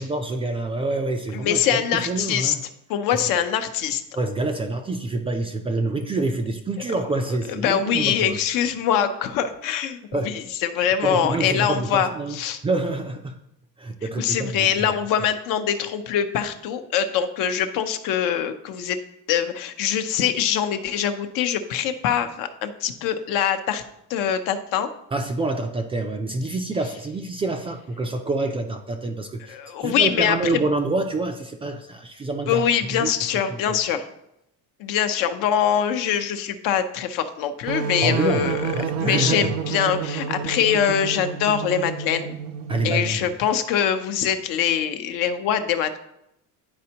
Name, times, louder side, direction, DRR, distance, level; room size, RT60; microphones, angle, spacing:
voice 1, 0.0-2.6 4.1-8.4 10.1-10.4 11.0-12.4 12.6-13.4 13.8-14.9 25.1-32.6 32.9-33.1 33.5-33.8 38.0-39.5 42.7-43.3, right 2 dB, 15° right, 4 dB, 0.3 m, -27 dB
voice 2, 1.4-2.5 2.9-4.0 7.5-12.6 14.2-19.0 19.3-23.8 24.1-24.9 29.5-30.6 32.5-34.0 34.8-38.7 39.0-42.3 42.8-46.0, left 9 dB, 65° left, 8 dB, 0.8 m, -23 dB
sound 1, 37.7-43.2, right 7 dB, 90° right, 0.7 m, -29 dB
10.5 x 4.3 x 2.8 m, 0.80 s
cardioid pair, 150°, 36 cm